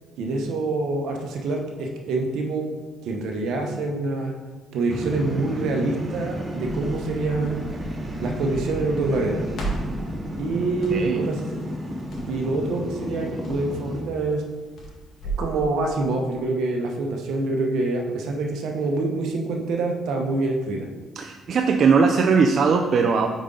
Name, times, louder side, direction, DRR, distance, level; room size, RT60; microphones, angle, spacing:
voice 1, 0.2-2.7 3.0-4.4 4.7-7.6 8.2-9.5 10.4-11.6 12.3-14.4 15.4-20.9, right 3 dB, 75° right, 2 dB, 0.9 m, -26 dB
sound 1, 4.9-14.0, equal, 25° right, 0.8 m, -32 dB
Crackle, 6.4-15.5, right 3 dB, 60° left, 1.9 m, -37 dB
voice 2, 10.9-11.2 21.2-23.3, right 5 dB, 55° right, 3 dB, 0.4 m, -19 dB
5.3 x 5.0 x 3.8 m, 1.3 s
cardioid pair, 85°, 0 cm